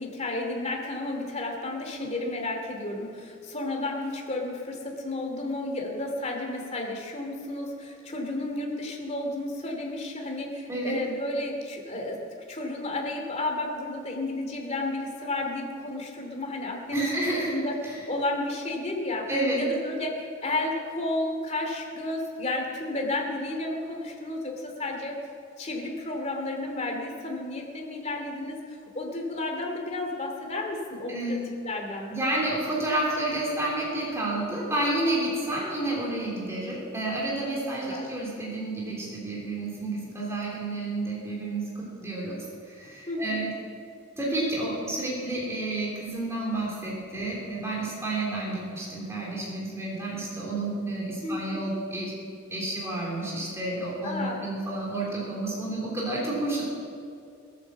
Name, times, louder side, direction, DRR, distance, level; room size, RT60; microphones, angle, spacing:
voice 1, 0.0-12.2 12.5-17.1 17.4-17.7 18.1-19.3 19.6-25.2 25.6-32.1 37.5-38.1 43.1-43.5 51.2-51.6 54.0-54.4, left 2 dB, 35° left, 1 dB, 2.7 m, -32 dB
voice 2, 16.9-17.5 19.3-19.6 31.1-31.5 32.1-43.5 44.2-52.1 52.5-56.6, right 2 dB, 15° right, -5 dB, 3.6 m, -30 dB
18.5 x 9.1 x 7.4 m, 2.4 s
head